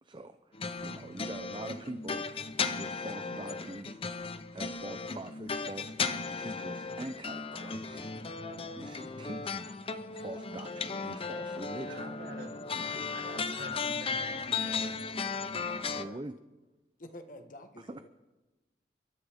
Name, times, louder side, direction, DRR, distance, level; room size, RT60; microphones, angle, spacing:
voice 1, 0.0-2.3 2.7-8.1 8.4-9.8 10.1-12.1 12.7-13.1 15.9-16.3 17.8-18.0, right 2 dB, 25° right, 9 dB, 0.6 m, -44 dB
sound 1, 0.5-16.0, left 4 dB, 30° left, 0.7 m, -36 dB
voice 2, 11.8-12.6 13.1-15.0, right 1 dB, 60° right, 0 dB, 3.2 m, -46 dB
voice 3, 15.8-16.2 17.0-18.1, left 1 dB, 50° left, 6 dB, 1.4 m, -49 dB
29.0 x 13.5 x 3.6 m, 1.1 s
head